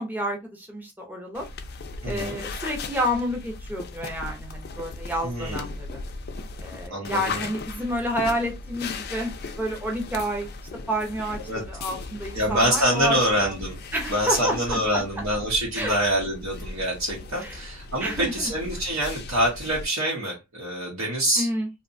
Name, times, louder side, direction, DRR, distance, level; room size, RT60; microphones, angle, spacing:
voice 1, 0.0-1.5 2.1-6.0 6.6-9.3 9.6-10.5 10.9-13.6 13.9-15.2 15.7-16.0 17.4-17.6 18.0-18.5 21.4-21.7, equal, 10° right, 1 dB, 0.5 m, -29 dB
sound 1, 1.3-19.8, left 3 dB, 45° left, 0.3 m, -37 dB
voice 2, 2.0-2.4 5.2-5.7 6.9-7.5 11.4-11.6 12.3-13.8 14.1-21.5, equal, 80° right, -3 dB, 0.8 m, -25 dB
2.7 x 2.1 x 2.5 m, 0.23 s
head